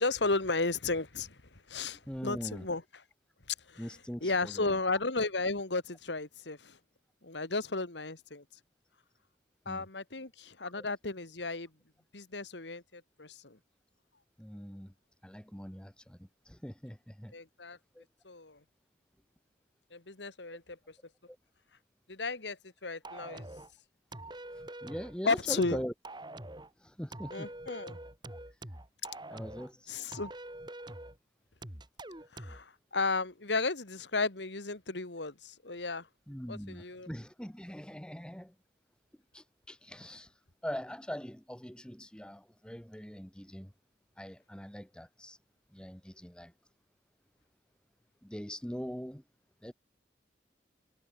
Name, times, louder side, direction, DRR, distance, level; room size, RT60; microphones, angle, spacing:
voice 1, 0.0-2.8 3.7-3.9 4.2-6.8 7.2-8.4 9.7-11.7 12.1-13.6 17.3-17.8 18.2-18.6 19.9-20.9 22.1-23.5 25.2-25.8 27.3-28.0 29.9-30.3 32.3-36.1 36.5-37.1, left 3 dB, 80° left, 2.2 m, -34 dB
voice 2, 2.1-2.7 3.8-4.7 9.7-9.8 10.8-10.9 14.4-14.9 15.2-17.3 17.9-18.0 21.3-21.4 24.5-25.9 26.8-27.5 28.3-28.6 29.3-29.9 36.3-38.5 39.3-43.7 44.2-45.4 45.7-46.5 48.2-49.2 49.6-49.7, equal, 5° left, 1.2 m, -42 dB
sound 1, 23.0-23.7 24.1-25.2 25.6-26.7 27.1-29.7 30.1-31.2 31.6-32.6, right 1 dB, 25° right, 2.9 m, -45 dB
head